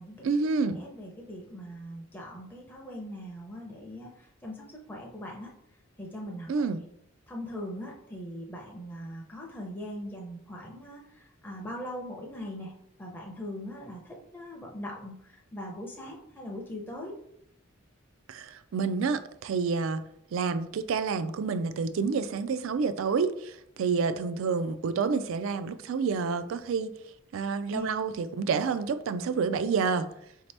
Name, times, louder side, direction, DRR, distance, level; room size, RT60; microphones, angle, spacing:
voice 1, 0.2-0.8 6.5-6.8 18.3-20.0 20.3-27.0 27.3-30.1, right 5 dB, 70° right, 0.3 m, -29 dB
voice 2, 0.7-5.5 6.0-6.6 7.3-17.1 27.7-27.9, left 1 dB, 10° left, 0.5 m, -41 dB
4.9 x 2.8 x 3.3 m
head